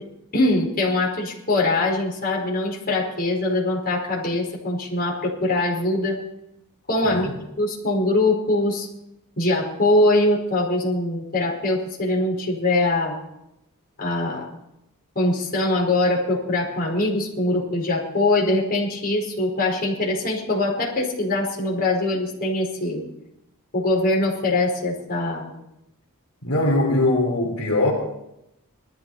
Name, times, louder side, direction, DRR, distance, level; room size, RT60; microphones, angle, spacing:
voice 1, 0.3-6.2 6.9-7.3 7.6-8.9 9.4-13.2 14.0-14.5 15.1-23.0 23.7-25.6, left 2 dB, 45° left, -1 dB, 4.9 m, -22 dB
voice 2, 26.4-27.9, left 2 dB, 75° left, 0 dB, 3.6 m, -21 dB
20.0 x 13.0 x 4.2 m, 0.84 s
head